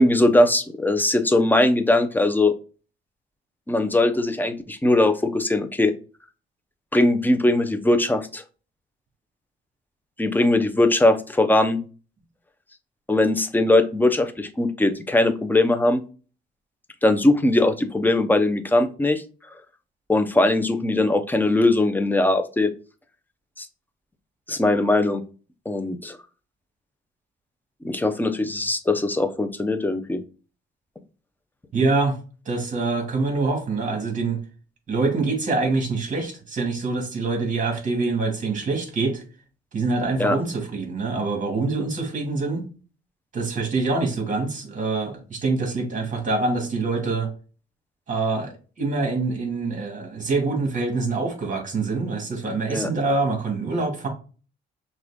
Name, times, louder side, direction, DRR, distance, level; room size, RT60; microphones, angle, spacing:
voice 1, 0.0-2.5 3.7-5.9 6.9-8.4 10.2-11.8 13.1-16.0 17.0-19.2 20.1-22.7 23.6-23.7 24.5-25.2 25.7-26.2 27.8-30.2 40.2-40.4 52.7-52.9, left 2 dB, 10° left, 8 dB, 0.7 m, -20 dB
voice 2, 31.7-32.2 32.5-34.4 34.9-39.2 39.7-42.6 43.3-47.3 48.1-54.1, right 3 dB, 40° right, 1 dB, 2.2 m, -25 dB
5.9 x 2.5 x 3.6 m, 0.36 s
cardioid pair, 90°, 20 cm